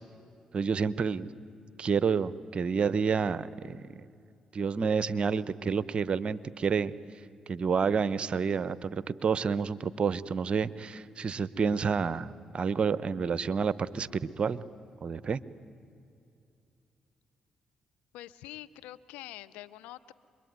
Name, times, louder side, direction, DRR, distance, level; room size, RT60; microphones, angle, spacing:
voice 1, 0.5-1.3 1.8-3.8 4.5-6.9 7.5-14.6 15.0-15.4, right 5 dB, 50° right, 18 dB, 0.9 m, -29 dB
voice 2, 18.1-20.1, left 15 dB, 90° left, 16 dB, 0.7 m, -45 dB
27.0 x 23.0 x 9.5 m, 2.5 s
supercardioid pair, 50°, 2 cm